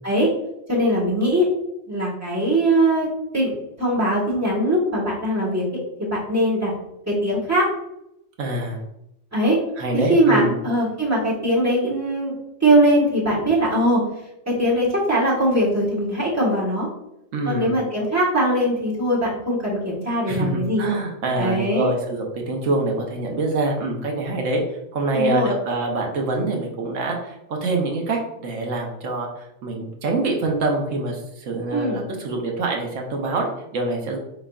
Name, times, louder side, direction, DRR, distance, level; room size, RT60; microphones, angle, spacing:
voice 1, 0.7-1.5 1.9-3.1 3.3-5.6 6.0-6.7 7.1-7.7 9.3-9.6 9.9-12.3 12.6-14.0 14.5-16.9 17.4-20.8 21.4-21.9 25.1-25.5 31.7-32.0, right 1 dB, 15° right, -5 dB, 1.3 m, -21 dB
voice 2, 8.4-8.8 9.8-10.6 17.3-17.8 20.3-34.2, right 2 dB, 85° right, 1 dB, 1.2 m, -25 dB
4.6 x 4.4 x 2.3 m, 0.83 s
omnidirectional pair, 1.3 m